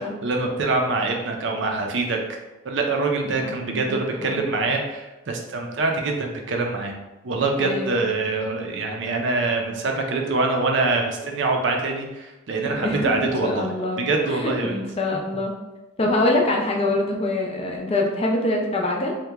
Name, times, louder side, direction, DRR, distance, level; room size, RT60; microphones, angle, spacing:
voice 1, 0.2-2.2 2.6-7.0 7.2-13.7 14.0-14.8, right 3 dB, 60° right, 2 dB, 0.5 m, -24 dB
voice 2, 3.5-4.0 4.4-4.5 7.6-8.0 12.6-13.1 13.4-15.5 16.0-19.1, left 2 dB, 30° left, 0 dB, 0.4 m, -24 dB
2.8 x 2.2 x 3.4 m, 1.0 s
head